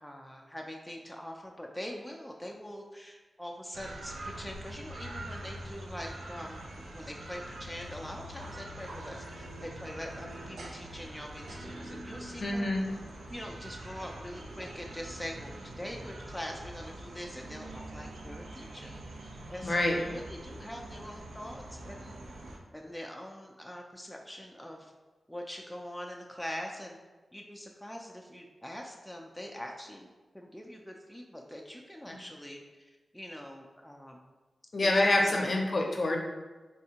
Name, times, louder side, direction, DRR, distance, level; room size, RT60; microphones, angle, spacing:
voice 1, 0.0-12.7 13.3-18.9 19.5-22.1 22.7-24.9 25.3-27.0 27.3-34.2 34.8-34.9 35.2-35.5, equal, 5° left, 0 dB, 0.3 m, -43 dB
sound 1, 3.7-22.6, right 1 dB, 90° right, 0.4 m, -44 dB
voice 2, 12.4-12.8 19.6-19.9 34.7-36.2, left 2 dB, 50° left, 1 dB, 0.6 m, -26 dB
3.5 x 3.1 x 2.8 m, 1.2 s
wide cardioid pair, 75°, 0 cm